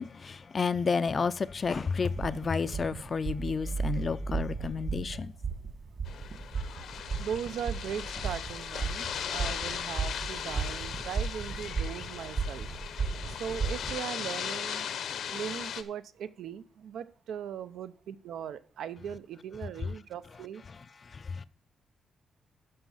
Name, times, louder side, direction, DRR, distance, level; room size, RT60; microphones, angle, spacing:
voice 1, 0.0-5.3 21.1-21.4, left 5 dB, 30° left, 0.4 m, -31 dB
sound 1, 2.0-13.9, right 5 dB, 40° right, 1.6 m, -36 dB
sound 2, 3.3-6.3, right 4 dB, 25° right, 0.9 m, -37 dB
sound 3, 6.1-15.8, left 8 dB, 65° left, 0.8 m, -38 dB
voice 2, 7.2-12.7 13.3-14.9 15.3-20.6, right 8 dB, 75° right, 0.6 m, -39 dB
12.0 x 5.5 x 5.6 m
wide cardioid pair, 165°, 0 cm